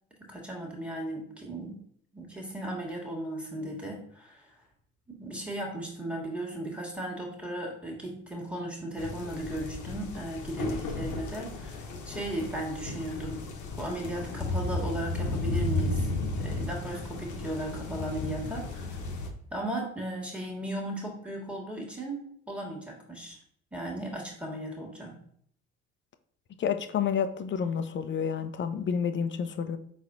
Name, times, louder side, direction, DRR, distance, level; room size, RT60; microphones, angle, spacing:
voice 1, 0.2-1.8 2.1-4.4 5.1-13.4 13.8-16.1 16.4-19.0 19.5-23.4 23.7-25.1, right 1 dB, 5° right, -2 dB, 1.6 m, -36 dB
sound 1, 9.0-19.3, left 2 dB, 55° left, 0.9 m, -34 dB
voice 2, 26.6-29.8, left 7 dB, 35° left, 10 dB, 0.6 m, -29 dB
4.9 x 4.1 x 2.6 m, 0.65 s
hypercardioid pair, 50°, 35 cm